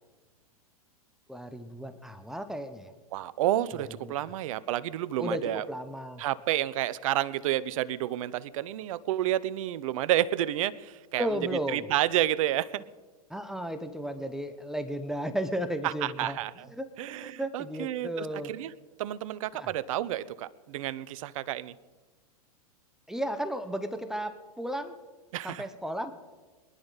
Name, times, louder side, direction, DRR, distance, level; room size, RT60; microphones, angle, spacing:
voice 1, 1.3-2.9 3.7-4.1 5.2-5.4 5.7-6.2 11.2-11.9 13.3-16.4 16.8-16.9 17.2-18.5 19.5-19.7 23.1-24.9 25.4-26.1, right 1 dB, ahead, 9 dB, 1.2 m, -34 dB
voice 2, 3.1-5.6 6.2-11.4 11.7-12.8 15.8-16.7 17.0-18.7 19.0-21.7 25.3-25.7, right 13 dB, 60° right, 17 dB, 0.7 m, -30 dB
23.5 x 11.0 x 4.1 m, 1.3 s
hypercardioid pair, 100°, 19 cm